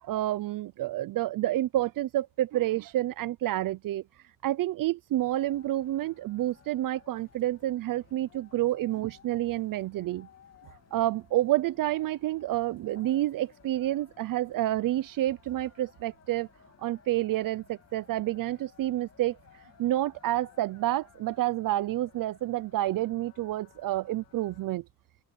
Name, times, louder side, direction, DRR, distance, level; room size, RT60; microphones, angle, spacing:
voice 1, 0.0-4.0 4.4-10.3 10.9-16.5 16.8-19.4 19.8-24.8, right 14 dB, 65° right, 0.6 m, -29 dB
sound 1, 5.2-24.7, left 8 dB, 45° left, 2.7 m, -59 dB
open air
cardioid pair, 160°, 35 cm